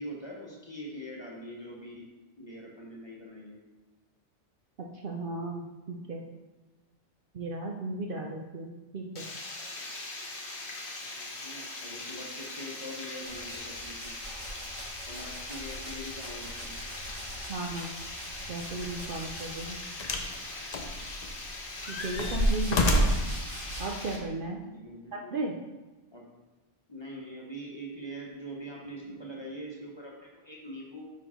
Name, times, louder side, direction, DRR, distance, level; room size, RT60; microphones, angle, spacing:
voice 1, 0.0-2.1 2.4-3.6 11.1-14.1 15.1-16.8 24.7-25.5 26.1-26.3 26.9-31.0, equal, 25° left, -3 dB, 1.0 m, -43 dB
voice 2, 5.0-6.3 7.3-9.3 17.5-17.9 18.5-19.8 21.9-23.1 23.8-24.6 25.3-25.5, right 2 dB, 55° right, 1 dB, 0.7 m, -35 dB
Water, 9.2-24.2, left 2 dB, 65° left, 1.2 m, -41 dB
sound 1, 13.2-20.0 20.8-24.1, right 1 dB, 80° right, 1.8 m, -45 dB
sound 2, 18.8-19.0 20.0-20.4 20.7-21.4 21.8-23.3 24.2-24.3, left 1 dB, 45° left, 0.6 m, -27 dB
5.3 x 4.8 x 4.3 m, 1.1 s
omnidirectional pair, 1.2 m